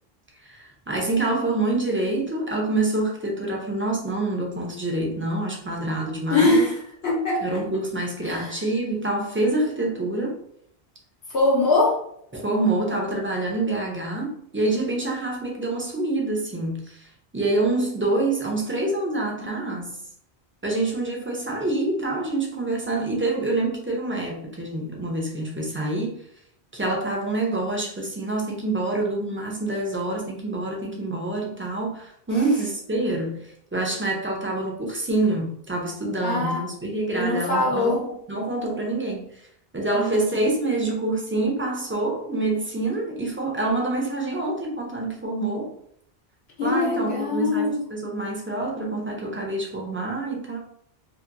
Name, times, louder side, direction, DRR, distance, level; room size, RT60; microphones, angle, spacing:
voice 1, 0.4-6.7 7.4-10.3 12.3-20.0 20.6-26.2 26.7-39.4 39.7-45.7 46.6-50.6, right 2 dB, 20° right, -1 dB, 0.3 m, -26 dB
voice 2, 6.3-6.7 7.0-7.6 8.3-8.5 11.3-12.0 36.2-36.6 37.1-38.0 39.9-40.2 46.6-47.8, left 2 dB, 75° left, -2 dB, 1.0 m, -22 dB
2.8 x 2.6 x 2.5 m, 0.68 s
omnidirectional pair, 1.1 m